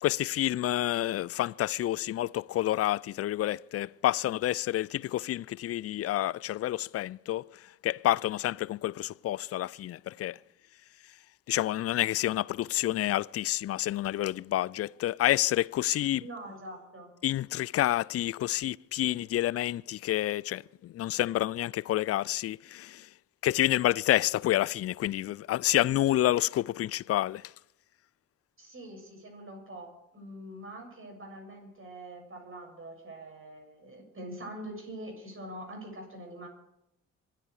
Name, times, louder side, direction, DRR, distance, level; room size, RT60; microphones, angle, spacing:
voice 1, 0.0-7.4 7.8-10.4 11.5-16.2 17.2-23.0 23.4-27.4, left 14 dB, 40° left, 0.5 m, -29 dB
voice 2, 16.2-17.1 28.6-36.5, right 1 dB, 35° right, 7.6 m, -44 dB
25.5 x 10.0 x 5.0 m
hypercardioid pair, 50°, 38 cm